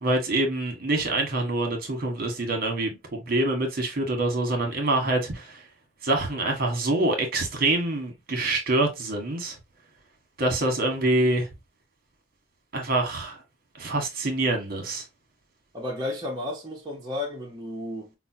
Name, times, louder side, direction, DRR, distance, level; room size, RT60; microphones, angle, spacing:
voice 1, 0.0-5.6 6.0-9.6 10.4-11.5 12.7-13.4 13.8-15.0, right 2 dB, 50° right, 1.2 m, -25 dB
voice 2, 15.7-18.1, left 2 dB, 20° right, 0.8 m, -33 dB
5.2 x 2.1 x 2.7 m
head